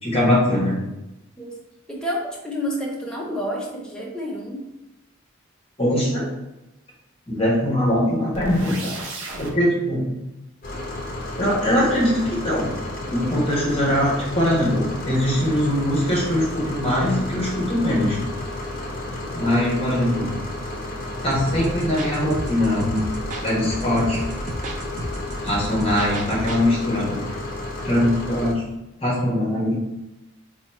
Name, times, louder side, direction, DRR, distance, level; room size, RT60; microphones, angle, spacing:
voice 1, 0.0-0.8 5.8-6.3 7.3-8.9 9.4-10.0 11.4-12.7 13.1-18.2 19.3-20.3 21.2-23.1 23.4-24.2 25.4-27.2 27.8-28.6 29.0-29.8, left 1 dB, 30° left, -6 dB, 1.2 m, -21 dB
voice 2, 1.9-4.7, equal, 5° left, -3 dB, 0.6 m, -29 dB
sound 1, 8.3-9.5, right 2 dB, 90° right, 0.7 m, -33 dB
sound 2, 10.6-28.5, left 1 dB, 45° left, 0.7 m, -32 dB
sound 3, 21.3-26.6, right 1 dB, 40° right, 0.4 m, -32 dB
3.0 x 2.3 x 4.2 m, 0.96 s
head